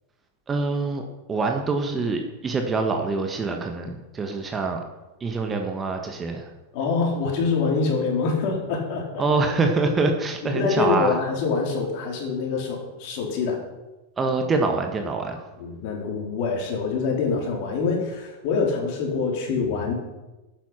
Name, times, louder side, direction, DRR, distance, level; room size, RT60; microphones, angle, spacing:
voice 1, 0.5-4.8 5.2-6.5 9.2-11.1 14.2-15.4, right 3 dB, 20° right, 4 dB, 1.5 m, -25 dB
voice 2, 6.7-9.2 10.4-13.6 15.6-19.9, left 4 dB, 45° left, 0 dB, 4.0 m, -25 dB
12.5 x 9.3 x 5.8 m, 1.1 s
figure-of-eight pair, 90°, 0 cm